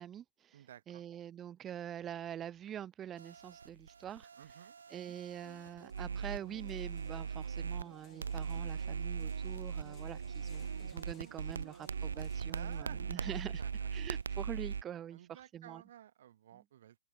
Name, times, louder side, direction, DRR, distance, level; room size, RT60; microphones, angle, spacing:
voice 1, 0.0-4.3 4.9-13.6 13.9-15.8 16.5-16.6, right 10 dB, 15° right, 0.6 m, -45 dB
voice 2, 0.5-1.0 4.4-4.8 12.5-13.9 15.1-17.0, right 11 dB, 50° right, 5.3 m, -54 dB
sound 1, 3.2-7.9 8.2-14.8, right 6 dB, 85° right, 0.5 m, -40 dB
sound 2, 4.7-4.8 5.1-14.7, left 14 dB, 20° left, 4.3 m, -70 dB
sound 3, 5.4-14.8 15.2-15.3, right 7 dB, 70° right, 3.4 m, -54 dB
hypercardioid pair, 160°, 0 cm